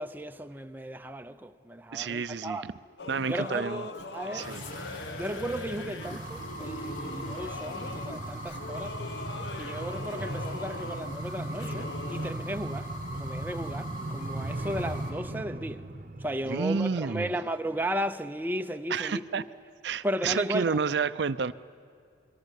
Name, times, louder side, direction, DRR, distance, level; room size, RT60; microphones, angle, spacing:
voice 1, 0.0-2.7 3.3-4.5 5.2-8.9 9.6-15.8 16.2-19.5 20.0-20.8, equal, 10° right, 0.6 m, -35 dB
voice 2, 1.9-2.6 3.1-3.8 4.3-4.6 16.5-17.3 18.9-19.4 19.8-21.5, right 5 dB, 70° right, 0.5 m, -30 dB
Singing / Musical instrument, 3.0-12.3, left 3 dB, 70° left, 1.1 m, -41 dB
sound 1, 4.3-15.1, equal, 45° left, 4.1 m, -43 dB
sound 2, 4.3-17.5 17.8-17.9, right 1 dB, 45° right, 0.9 m, -38 dB
27.0 x 22.0 x 8.2 m
head